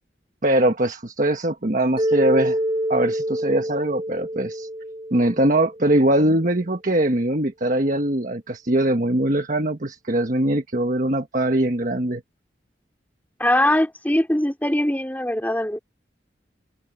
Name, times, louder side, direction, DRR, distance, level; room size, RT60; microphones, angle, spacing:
voice 1, 0.4-2.6 2.9-4.7 5.1-12.2, right 1 dB, 45° right, 1.3 m, -21 dB
Mallet percussion, 2.0-6.1, equal, 25° right, 5.5 m, -26 dB
voice 2, 13.4-15.8, left 1 dB, 10° left, 2.7 m, -21 dB
head